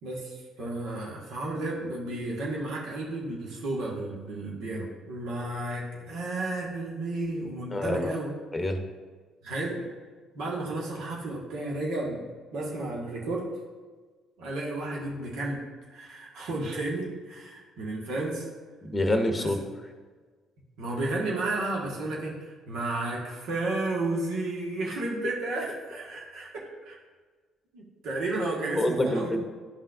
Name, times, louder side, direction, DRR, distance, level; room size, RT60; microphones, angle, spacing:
voice 1, 0.0-8.3 9.4-9.9 10.3-12.2 12.5-13.5 14.4-15.7 15.9-18.5 19.3-19.5 20.8-27.0 27.7-29.4, right 2 dB, 70° right, -3 dB, 1.5 m, -32 dB
voice 2, 7.7-8.1 8.5-8.8 18.8-19.6 28.8-29.4, left 1 dB, 20° left, 5 dB, 0.9 m, -26 dB
10.5 x 5.5 x 2.5 m, 1.4 s
hypercardioid pair, 50°, 0 cm